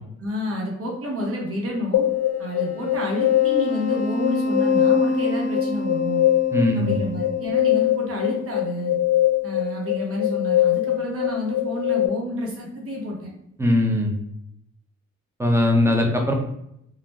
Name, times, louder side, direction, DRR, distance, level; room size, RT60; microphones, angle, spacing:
voice 1, 0.2-2.1 2.4-6.3 6.7-9.0 9.4-13.3, left 1 dB, 50° right, -2 dB, 0.9 m, -29 dB
sound 1, 1.9-12.1, left 10 dB, 60° left, 0.5 m, -22 dB
voice 2, 6.5-7.0 13.6-14.1 15.4-16.3, left 1 dB, 10° right, 1 dB, 0.5 m, -20 dB
2.4 x 2.1 x 3.0 m, 0.79 s
cardioid pair, 90°, 30 cm